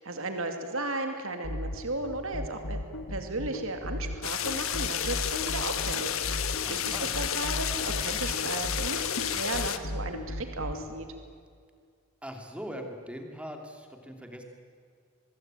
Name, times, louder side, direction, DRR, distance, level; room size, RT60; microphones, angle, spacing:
voice 1, 0.0-2.8 3.1-11.1, right 2 dB, 65° right, 6 dB, 2.5 m, -35 dB
sound 1, 1.4-10.8, left 1 dB, 85° left, 2.6 m, -35 dB
sound 2, 4.2-9.8, left 9 dB, 65° left, 1.4 m, -31 dB
voice 2, 6.6-7.1 12.2-14.4, equal, 5° right, 4 dB, 2.8 m, -41 dB
24.5 x 21.5 x 9.1 m, 2.2 s
head